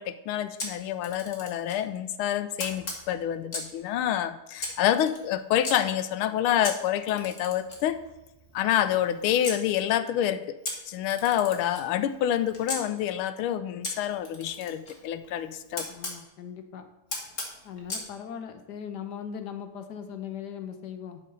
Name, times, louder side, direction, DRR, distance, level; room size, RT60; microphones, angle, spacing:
voice 1, 0.0-8.0 8.5-10.6 10.9-15.9, left 11 dB, 80° left, 12 dB, 1.4 m, -27 dB
Camera, 0.6-1.8 2.6-3.8 4.6-5.7 6.6-9.6 10.6-12.8 13.8-16.2 17.1-18.1, left 2 dB, 40° left, 1.7 m, -38 dB
voice 2, 15.9-16.8 17.6-21.2, left 8 dB, 65° left, 8 dB, 1.2 m, -39 dB
11.0 x 4.3 x 5.5 m, 0.98 s
omnidirectional pair, 2.4 m